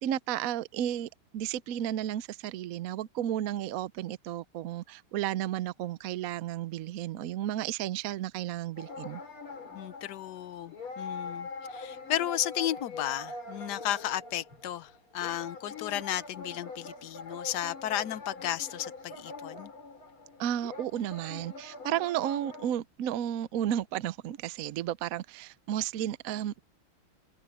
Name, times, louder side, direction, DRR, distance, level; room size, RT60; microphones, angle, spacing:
voice 1, 0.0-9.2 20.4-26.6, right 11 dB, 75° right, 0.8 m, -33 dB
sound 1, 8.8-22.7, left 4 dB, 85° left, 4.9 m, -43 dB
voice 2, 9.7-19.7, left 12 dB, 60° left, 1.3 m, -34 dB
omnidirectional pair, 2.3 m